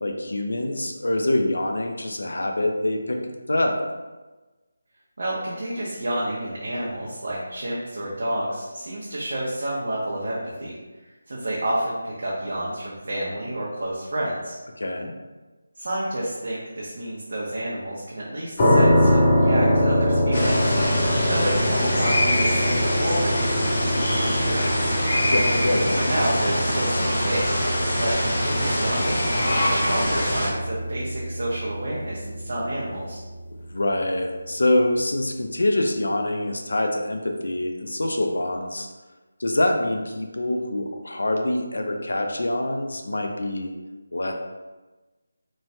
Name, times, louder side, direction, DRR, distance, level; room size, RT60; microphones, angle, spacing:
voice 1, 0.0-3.2 3.5-3.8 14.8-15.1 25.3-26.0 33.7-38.9 39.4-43.7 44.1-44.3, left 1 dB, 85° left, 4 dB, 0.4 m, -25 dB
voice 2, 5.2-10.8 11.3-14.5 15.8-20.7 21.3-24.1 24.4-24.9 26.0-27.6 28.0-33.2, right 1 dB, 55° right, -6 dB, 0.6 m, -29 dB
sound 1, 18.6-33.4, equal, 20° left, 0.4 m, -24 dB
sound 2, 20.3-30.5, left 1 dB, 45° left, 1.0 m, -24 dB
3.0 x 2.1 x 2.7 m, 1.2 s
figure-of-eight pair, 175°, 0 cm